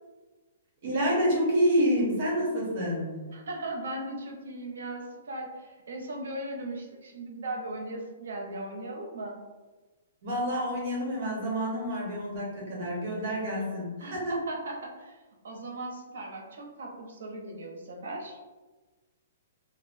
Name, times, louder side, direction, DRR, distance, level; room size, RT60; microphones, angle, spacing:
voice 1, 0.8-3.2 10.2-14.3, equal, 45° right, -4 dB, 0.9 m, -28 dB
voice 2, 3.3-9.3 14.0-15.2 15.4-18.4, right 1 dB, 80° right, 0 dB, 0.6 m, -38 dB
2.9 x 2.1 x 2.6 m, 1.3 s
hypercardioid pair, 170°, 0 cm